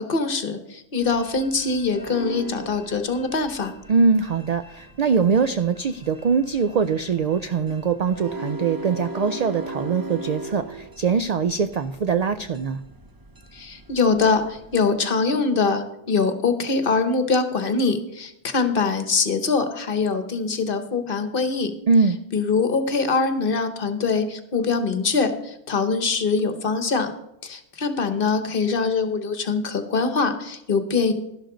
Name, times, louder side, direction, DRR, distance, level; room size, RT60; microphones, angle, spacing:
voice 1, 0.0-3.7 13.5-21.7 22.3-27.1 27.4-31.1, left 4 dB, 50° left, 9 dB, 1.1 m, -23 dB
sound 1, 1.0-14.9, right 1 dB, 25° right, 0.6 m, -39 dB
voice 2, 3.9-12.8 21.9-22.2, right 5 dB, 70° right, 11 dB, 0.3 m, -22 dB
12.0 x 11.5 x 3.8 m, 0.85 s
omnidirectional pair, 1.2 m